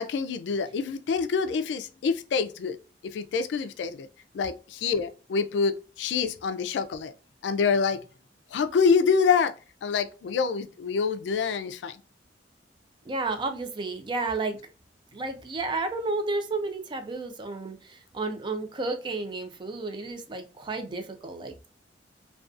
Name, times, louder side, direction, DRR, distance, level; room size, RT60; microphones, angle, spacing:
voice 1, 0.0-2.8 3.1-4.1 4.3-7.1 7.4-8.0 8.5-9.5 9.8-12.0, left 5 dB, 75° left, 0.3 m, -26 dB
voice 2, 13.1-14.5 15.1-21.7, right 3 dB, 25° right, 0.4 m, -32 dB
2.5 x 2.3 x 2.3 m
head